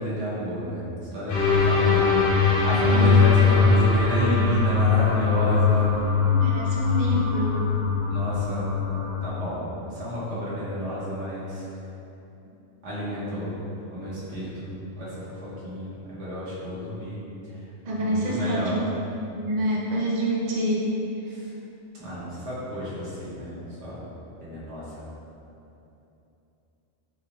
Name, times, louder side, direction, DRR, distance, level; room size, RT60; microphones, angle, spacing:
voice 1, 0.0-5.9 8.1-8.7 9.2-11.6 12.8-13.5 13.9-14.7 15.0-17.2 18.0-18.8 22.0-24.0 24.4-24.8, left 1 dB, 70° right, -9 dB, 1.3 m, -30 dB
sound 1, 1.3-9.3, left 5 dB, 70° left, 1.0 m, -21 dB
voice 2, 2.7-3.2 6.2-7.6 17.9-18.8 19.3-20.9, right 1 dB, 50° right, -5 dB, 0.5 m, -27 dB
4.1 x 3.2 x 2.3 m, 2.9 s
omnidirectional pair, 1.3 m